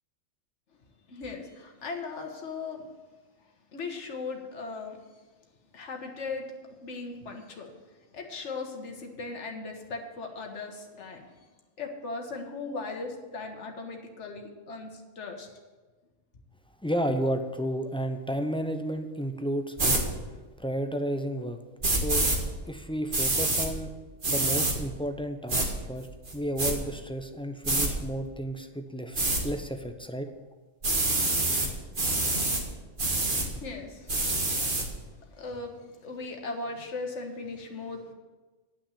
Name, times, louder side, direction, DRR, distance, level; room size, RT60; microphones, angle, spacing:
voice 1, 1.1-2.8 3.7-5.0 5.7-6.5 6.8-7.7 8.1-11.3 11.8-15.5 33.0-34.1 34.6-34.9 35.3-38.1, left 3 dB, 65° left, 3 dB, 1.7 m, -38 dB
voice 2, 16.8-20.1 20.6-21.6 21.9-22.3 22.7-23.9 24.3-26.1 26.3-30.3, equal, 10° left, 6 dB, 0.4 m, -32 dB
sound 1, 19.8-20.0 21.8-22.4 23.1-23.7 24.2-24.7 25.5-25.7 26.3-26.7 27.6-27.9 29.1-29.4 30.8-31.7 31.9-32.6 33.0-33.5 34.1-34.8, right 2 dB, 40° right, 1.7 m, -26 dB
10.5 x 6.1 x 8.4 m, 1.3 s
omnidirectional pair, 1.3 m